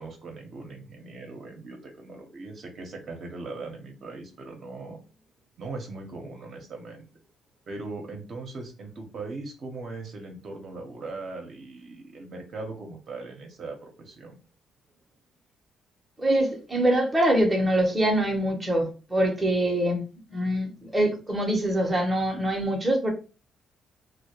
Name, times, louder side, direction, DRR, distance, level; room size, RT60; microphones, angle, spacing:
voice 1, 0.0-5.0 5.6-7.1 7.7-14.4, right 3 dB, 55° right, 2 dB, 0.6 m, -39 dB
voice 2, 16.2-20.0 20.3-23.1, right 1 dB, 15° right, 1 dB, 0.7 m, -24 dB
2.2 x 2.0 x 2.8 m, 0.34 s
cardioid pair, 90°, 0 cm